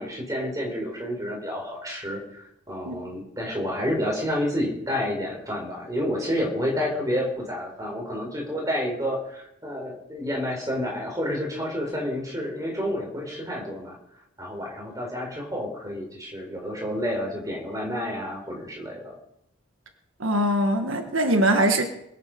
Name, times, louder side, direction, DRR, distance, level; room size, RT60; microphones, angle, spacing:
voice 1, 0.0-2.4 2.7-13.9 14.4-19.1, equal, 15° right, 0 dB, 4.8 m, -29 dB
voice 2, 20.2-21.8, right 1 dB, 80° right, 5 dB, 1.6 m, -22 dB
22.5 x 8.4 x 5.2 m, 0.79 s
head